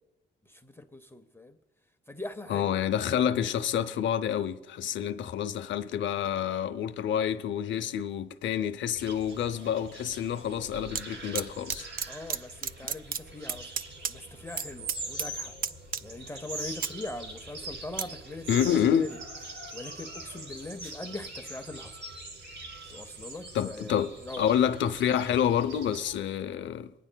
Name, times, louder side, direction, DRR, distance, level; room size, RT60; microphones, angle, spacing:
voice 1, 0.5-1.6 2.1-2.7 12.1-13.8 14.1-15.5 16.0-18.6 19.0-19.1 19.7-22.0 22.9-24.5, left 2 dB, 10° left, 0.6 m, -41 dB
voice 2, 2.5-11.9 18.5-19.1 23.5-24.1 24.4-26.9, left 9 dB, 85° left, 0.6 m, -28 dB
sound 1, 8.9-26.2, right 2 dB, 85° right, 2.1 m, -43 dB
sound 2, 10.5-11.0 11.3-12.4 12.6-14.1 14.4-14.6 14.9-15.3 15.6-16.3 16.6-18.0 18.6-18.7, right 7 dB, 50° right, 0.4 m, -33 dB
24.5 x 9.9 x 2.2 m
cardioid pair, 105°, 19 cm